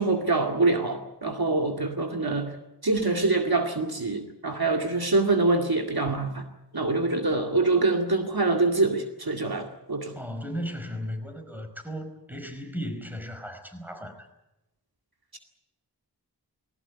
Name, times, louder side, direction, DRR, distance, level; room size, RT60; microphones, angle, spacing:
voice 1, 0.0-2.5 2.8-6.5 6.7-10.1, right 3 dB, 65° right, 3 dB, 2.2 m, -25 dB
voice 2, 10.2-14.3, equal, 5° right, 5 dB, 5.1 m, -36 dB
20.0 x 18.0 x 9.7 m, 0.93 s
wide cardioid pair, 40°, 40 cm